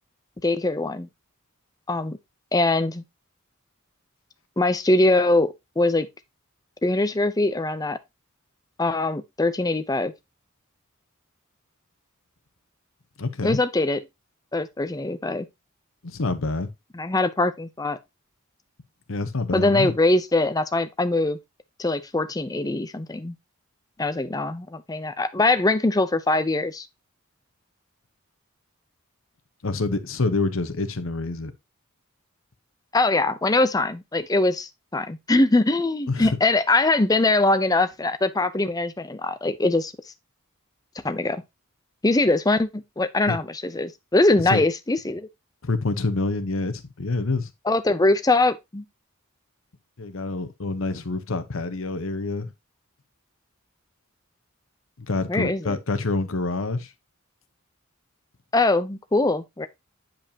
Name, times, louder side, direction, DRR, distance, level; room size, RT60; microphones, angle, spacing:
voice 1, 0.4-1.1 1.9-2.2 2.5-3.0 4.6-6.1 6.8-8.0 8.8-10.1 13.4-14.0 14.5-15.5 16.9-18.0 19.5-21.4 21.8-23.4 24.0-26.9 32.9-39.9 41.0-41.4 42.0-45.3 47.6-48.8 55.3-55.8 58.5-59.7, left 2 dB, 15° left, 0.5 m, -22 dB
voice 2, 13.2-13.6 16.0-16.7 19.1-19.9 29.6-31.5 36.1-36.4 43.3-43.4 44.5-44.6 45.6-47.5 50.0-52.5 55.1-56.9, left 3 dB, 65° left, 0.9 m, -27 dB
8.7 x 5.2 x 2.8 m
head